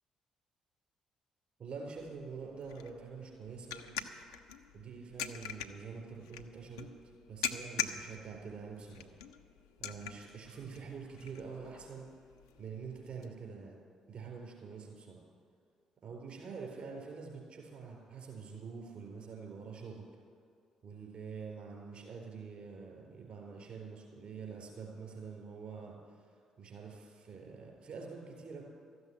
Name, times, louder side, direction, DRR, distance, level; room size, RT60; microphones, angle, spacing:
voice 1, 1.6-4.0 4.7-6.9 7.3-9.2 9.8-12.1 12.6-13.8 14.1-15.2 16.0-20.0 20.8-28.6, right 5 dB, 55° right, 0 dB, 4.4 m, -46 dB
sound 1, 2.0-13.3, left 8 dB, 85° left, 0.6 m, -44 dB
13.5 x 8.1 x 9.8 m, 2.3 s
hypercardioid pair, 45°, 2 cm